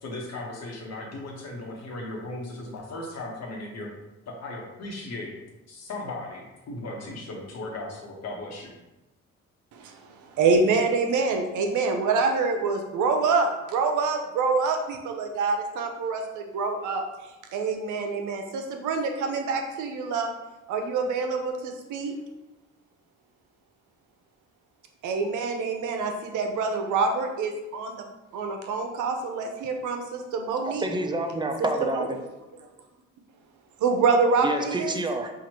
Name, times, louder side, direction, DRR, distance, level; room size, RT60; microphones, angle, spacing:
voice 1, 0.0-3.9 4.3-5.3 5.7-8.7, left 2 dB, 60° left, -1 dB, 1.1 m, -37 dB
voice 2, 9.7-20.3 20.7-22.1 25.0-28.0 28.3-30.9 31.6-32.1 33.8-34.9, right 4 dB, 80° right, 4 dB, 0.7 m, -26 dB
voice 3, 30.7-32.2 34.4-35.3, right 2 dB, 15° right, 4 dB, 0.4 m, -28 dB
4.6 x 2.5 x 2.9 m, 1.0 s
cardioid pair, 90°, 30 cm